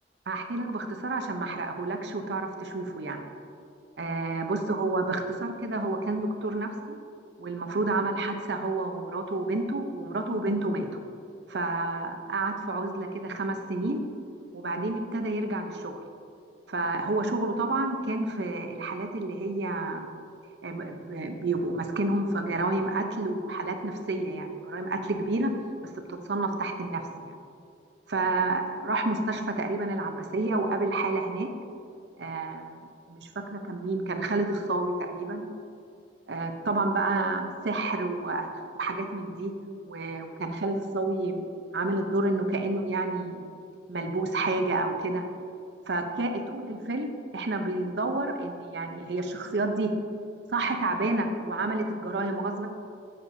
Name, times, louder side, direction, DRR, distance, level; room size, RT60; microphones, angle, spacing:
voice 1, 0.3-3.2 4.0-7.0 7.4-10.9 11.5-14.0 14.5-16.0 16.7-20.1 20.6-25.5 26.1-27.4 28.1-31.5 32.2-32.8 33.1-35.5 36.3-38.5 38.8-39.5 39.9-41.5 41.7-43.5 43.9-45.2 45.9-49.9 50.5-52.7, right 2 dB, 70° right, 5 dB, 0.7 m, -29 dB
9.4 x 7.1 x 2.7 m, 2.5 s
head